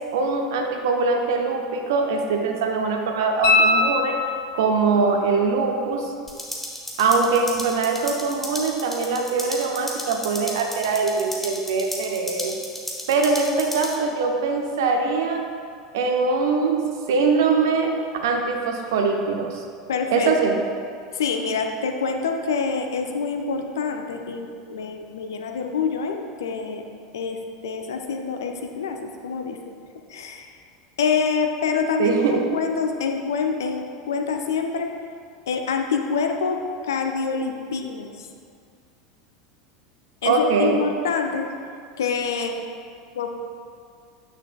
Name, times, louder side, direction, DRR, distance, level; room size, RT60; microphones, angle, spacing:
voice 1, 0.1-4.2 4.5-6.1 7.0-12.6 13.1-15.4 15.9-16.8 17.1-17.9 18.2-19.6 20.1-20.6 32.0-32.4 40.2-40.8, right 4 dB, 60° right, 3 dB, 0.7 m, -22 dB
sound 1, 3.4-4.8 7.6-7.7, left 3 dB, 50° left, 1.1 m, -21 dB
sound 2, 6.3-14.0, left 1 dB, 10° left, 1.0 m, -34 dB
voice 2, 19.9-20.5 21.1-26.8 27.1-29.6 30.1-30.5 31.0-34.9 35.5-38.3 40.2-41.5 42.0-42.6 43.2-43.3, left 5 dB, 65° left, 4 dB, 0.5 m, -26 dB
8.9 x 6.1 x 2.2 m, 2.3 s
figure-of-eight pair, 80°, 2 cm